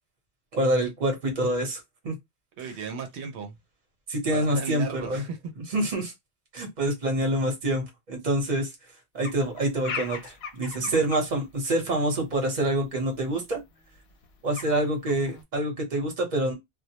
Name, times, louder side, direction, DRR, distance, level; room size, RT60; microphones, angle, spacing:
voice 1, 0.5-2.2 4.1-5.2 5.7-6.1 6.5-8.7 9.1-13.6 14.4-16.5, right 1 dB, 45° right, 1.0 m, -26 dB
voice 2, 2.6-3.6 4.3-5.5 10.8-11.0, right 6 dB, 90° right, 0.9 m, -36 dB
sound 1, 9.2-11.2 12.5-12.6 13.2-13.3 13.6-13.7 14.0-14.8 15.0-15.4, left 6 dB, 75° left, 0.8 m, -38 dB
2.3 x 2.0 x 2.8 m
omnidirectional pair, 1.1 m